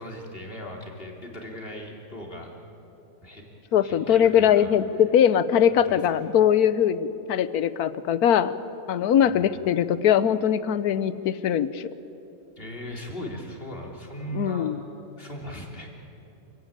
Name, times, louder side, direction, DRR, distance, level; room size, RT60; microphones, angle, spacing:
voice 1, 0.0-2.5 3.2-3.4 3.8-4.7 5.7-6.2 9.1-9.6 12.6-14.9 15.2-15.9, equal, 30° left, 0 dB, 3.5 m, -38 dB
voice 2, 3.7-8.5 8.9-11.9 14.3-14.8, left 9 dB, 65° left, 15 dB, 1.2 m, -21 dB
28.5 x 16.5 x 8.9 m, 3.0 s
omnidirectional pair, 1.8 m